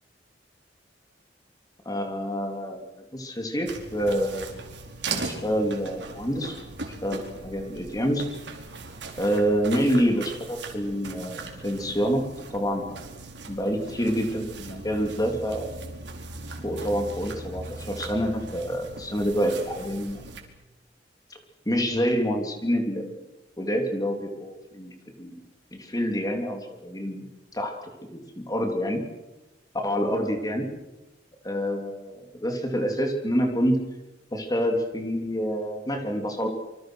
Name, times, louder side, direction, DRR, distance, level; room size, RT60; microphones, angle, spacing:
voice 1, 1.8-2.9 3.1-4.6 5.1-6.6 7.0-8.2 9.2-12.2 12.5-13.0 13.5-15.7 16.6-20.2 21.6-23.1 23.6-25.4 25.7-27.3 27.5-27.8 28.1-29.0 29.8-30.7 31.4-33.8 34.3-36.5, equal, 20° left, 3 dB, 3.2 m, -27 dB
sound 1, 3.7-20.4, right 3 dB, 70° right, 4.6 m, -39 dB
27.0 x 26.0 x 6.4 m, 1.0 s
head